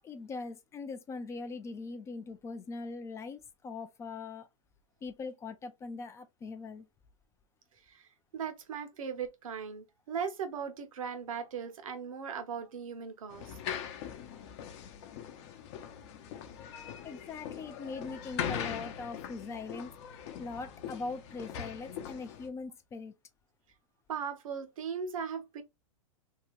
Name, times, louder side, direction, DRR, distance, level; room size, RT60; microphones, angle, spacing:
voice 1, 0.0-4.5 5.0-6.9 17.0-19.9 20.4-23.1, left 4 dB, 15° left, 0.3 m, -41 dB
voice 2, 7.9-13.6 24.1-25.6, right 6 dB, 80° right, 0.8 m, -38 dB
sound 1, 13.3-22.5, left 8 dB, 50° left, 0.7 m, -41 dB
2.8 x 2.3 x 3.0 m
hypercardioid pair, 125°, 17 cm